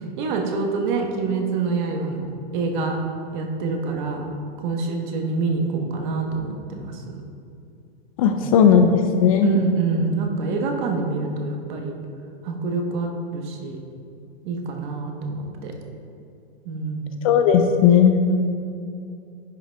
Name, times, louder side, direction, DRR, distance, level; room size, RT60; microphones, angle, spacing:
voice 1, 0.2-3.0 3.3-4.3 4.6-7.2 8.3-8.8 9.4-11.9 12.4-13.8 14.4-15.7 16.6-17.2 18.3-18.4, right 4 dB, 50° right, 3 dB, 1.1 m, -26 dB
voice 2, 8.2-9.5 17.2-18.2, left 7 dB, 35° left, 6 dB, 0.4 m, -16 dB
10.0 x 5.6 x 3.4 m, 2.5 s
supercardioid pair, 160°, 31 cm